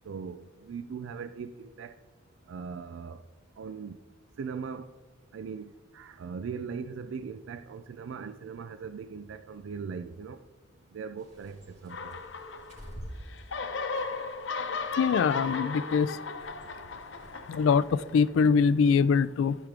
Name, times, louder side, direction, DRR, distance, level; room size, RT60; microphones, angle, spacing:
voice 1, 0.1-2.0 2.5-3.2 3.6-4.0 4.4-4.9 5.3-10.4 10.9-12.2, right 6 dB, 85° right, 0.3 m, -39 dB
Bird, 11.2-18.2, equal, 40° right, 3.0 m, -50 dB
sound 1, 11.9-13.0 13.3-18.3, left 4 dB, 70° left, 0.8 m, -36 dB
voice 2, 15.0-16.2 17.5-19.6, left 6 dB, 85° left, 0.3 m, -23 dB
14.0 x 4.9 x 3.7 m
head